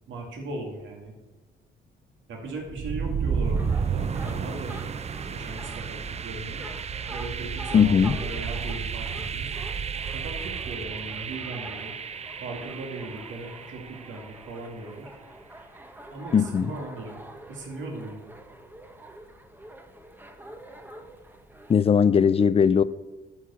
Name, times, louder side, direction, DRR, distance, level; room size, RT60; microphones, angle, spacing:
voice 1, 0.1-1.2 2.3-4.8 5.3-6.7 7.1-9.5 10.1-12.0 12.4-15.1 16.1-18.3 22.2-22.4, right 2 dB, 70° right, 2.4 m, -38 dB
sound 1, 2.7-14.5, right 6 dB, 35° right, 0.5 m, -32 dB
sound 2, 3.5-21.7, right 1 dB, 10° right, 1.0 m, -46 dB
voice 2, 7.7-8.2 16.3-16.7 21.7-22.8, left 7 dB, 30° left, 0.4 m, -19 dB
11.0 x 4.8 x 6.9 m
cardioid pair, 90°, 20 cm